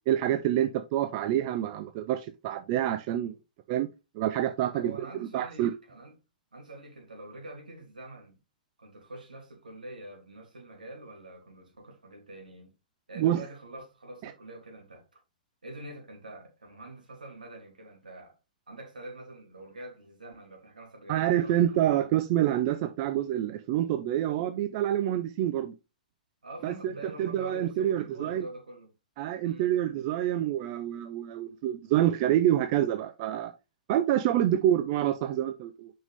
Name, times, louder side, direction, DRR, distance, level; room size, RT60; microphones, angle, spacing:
voice 1, 0.1-3.4 3.7-3.9 4.1-4.9 5.2-5.7 13.2-13.4 14.2-14.3 21.1-25.7 26.6-26.9 27.2-28.5 29.2-33.5 33.9-35.9, right 12 dB, 35° right, 0.5 m, -27 dB
voice 2, 4.7-6.1 6.5-8.4 8.8-12.7 13.1-15.2 15.6-18.4 18.7-21.6 21.9-22.0 26.4-28.9 29.4-29.7, right 1 dB, 70° right, 3.0 m, -45 dB
7.1 x 5.5 x 3.5 m
figure-of-eight pair, 110°, 5 cm